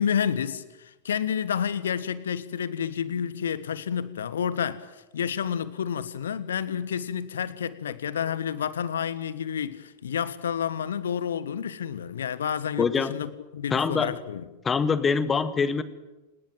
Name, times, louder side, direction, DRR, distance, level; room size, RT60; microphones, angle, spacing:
voice 1, 0.0-14.4, left 8 dB, 65° left, 1.6 m, -30 dB
voice 2, 12.8-13.1 13.7-14.1 14.6-15.8, left 5 dB, 20° left, 1.7 m, -24 dB
29.0 x 19.5 x 7.7 m
figure-of-eight pair, 90°, 0 cm